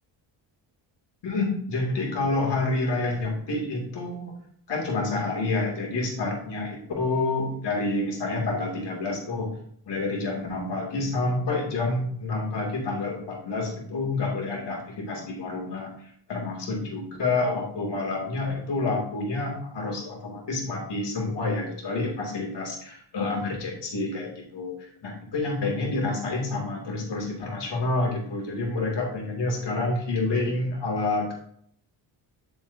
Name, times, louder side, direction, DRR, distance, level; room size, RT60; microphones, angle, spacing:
voice 1, 1.2-4.4 4.7-9.5 9.9-15.9 16.3-24.8 25.0-31.3, left 2 dB, 60° left, -1 dB, 2.6 m, -28 dB
8.0 x 6.8 x 2.7 m, 0.64 s
cardioid pair, 85°, 47 cm